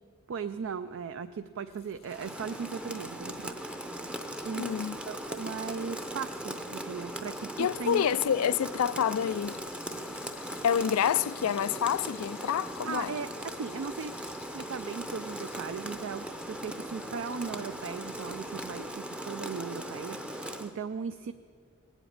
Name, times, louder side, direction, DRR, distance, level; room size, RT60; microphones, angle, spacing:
voice 1, 0.3-3.6 4.4-4.7 5.0-8.0 12.8-14.1 14.5-21.3, right 6 dB, 60° right, 0.4 m, -38 dB
Frying (food), 1.7-18.9, left 9 dB, 45° left, 0.7 m, -55 dB
Rain, 2.0-20.7, right 1 dB, 5° right, 0.6 m, -39 dB
voice 2, 4.6-5.0 7.6-9.6 10.6-13.1, left 8 dB, 80° left, 0.4 m, -28 dB
19.0 x 8.1 x 8.7 m
head